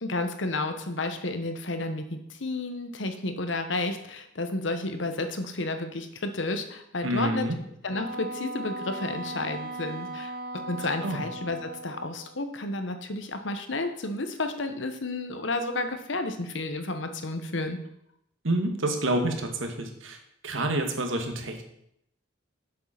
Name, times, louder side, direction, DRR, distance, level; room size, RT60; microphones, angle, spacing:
voice 1, 0.0-7.5 7.8-17.8, left 2 dB, 70° left, 7 dB, 1.2 m, -31 dB
voice 2, 7.0-7.6 11.0-11.2 18.4-20.2 20.4-21.7, right 1 dB, 85° right, 4 dB, 1.7 m, -28 dB
Wind instrument woodwind instrument, 7.9-12.4, right 2 dB, 50° right, 0.7 m, -38 dB
7.6 x 7.5 x 5.8 m, 0.75 s
head